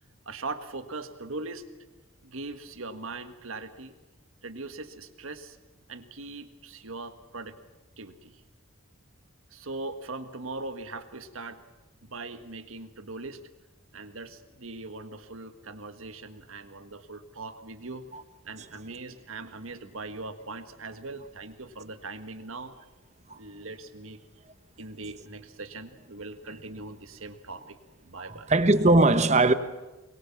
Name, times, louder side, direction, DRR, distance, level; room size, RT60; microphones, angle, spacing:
voice 1, 0.2-1.7 2.2-4.0 4.4-5.6 5.9-7.6 8.0-8.4 9.5-11.6 12.0-13.4 13.9-18.1 18.4-22.8 23.3-24.2 24.8-27.8 28.0-28.5, right 3 dB, 70° right, 1.6 m, -40 dB
voice 2, 28.2-29.5, right 2 dB, 30° right, 1.1 m, -20 dB
23.0 x 22.5 x 7.2 m
head